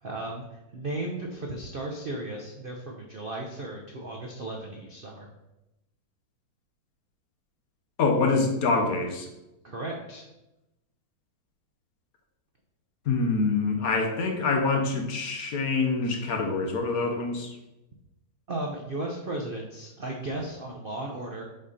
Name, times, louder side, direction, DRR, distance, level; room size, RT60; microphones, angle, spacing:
voice 1, 0.0-5.3 9.6-10.3 18.5-21.4, right 2 dB, 85° right, 0 dB, 0.4 m, -35 dB
voice 2, 8.0-9.3 13.1-17.6, left 3 dB, 55° left, 3 dB, 1.1 m, -25 dB
5.6 x 4.2 x 5.0 m, 0.94 s
omnidirectional pair, 2.1 m